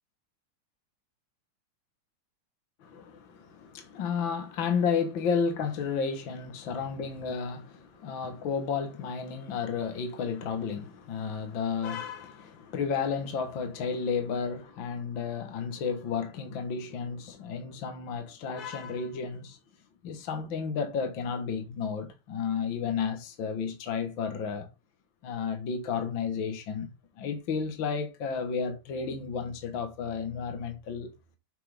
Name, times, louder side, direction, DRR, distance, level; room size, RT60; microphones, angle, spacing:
voice 1, 2.8-19.6 20.0-24.7 25.2-26.9 27.2-31.1, left 6 dB, 65° left, 2.1 m, -32 dB
8.3 x 6.0 x 3.5 m
omnidirectional pair, 2.4 m